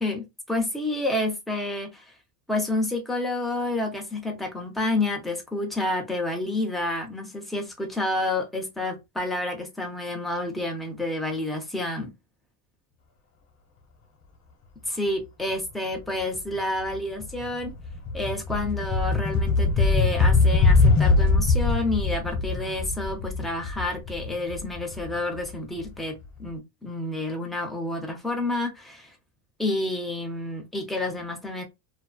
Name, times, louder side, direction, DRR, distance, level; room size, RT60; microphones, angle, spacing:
voice 1, 0.0-2.1 2.5-12.1 14.9-17.7 18.1-29.1 29.6-31.6, left 2 dB, ahead, 0.4 m, -29 dB
sound 1, 16.3-16.6 16.9-25.8, left 3 dB, 40° left, 1.0 m, -22 dB
2.4 x 2.3 x 2.2 m
supercardioid pair, 125°, 45 cm